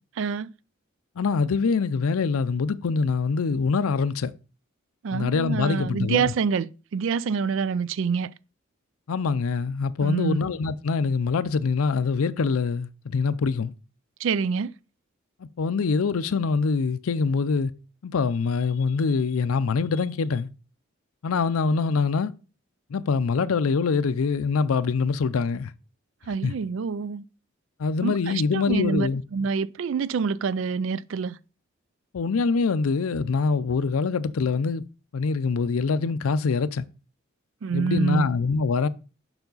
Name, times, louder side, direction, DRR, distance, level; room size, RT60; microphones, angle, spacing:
voice 1, 0.2-0.5 5.0-8.3 10.0-10.4 14.2-14.7 26.3-27.2 28.0-31.4 37.6-38.3, right 5 dB, 65° right, 0.3 m, -26 dB
voice 2, 1.2-4.3 5.1-6.3 9.1-13.7 15.6-17.7 18.0-20.5 21.2-22.3 22.9-25.7 26.4-26.5 27.8-29.2 32.1-34.9 35.1-36.9 37.7-38.9, left 4 dB, 85° left, 0.5 m, -24 dB
7.0 x 5.7 x 3.9 m
head